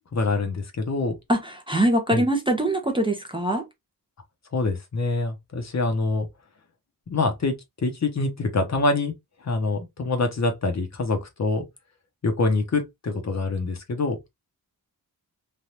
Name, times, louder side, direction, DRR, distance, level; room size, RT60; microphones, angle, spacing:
voice 1, 0.1-1.2 2.1-2.2 4.5-6.3 7.1-9.1 9.4-11.7 12.2-14.2, left 3 dB, 45° left, 0.8 m, -25 dB
voice 2, 1.3-3.7, right 1 dB, 15° right, 0.6 m, -23 dB
3.3 x 2.4 x 2.7 m
wide cardioid pair, 150°, 38 cm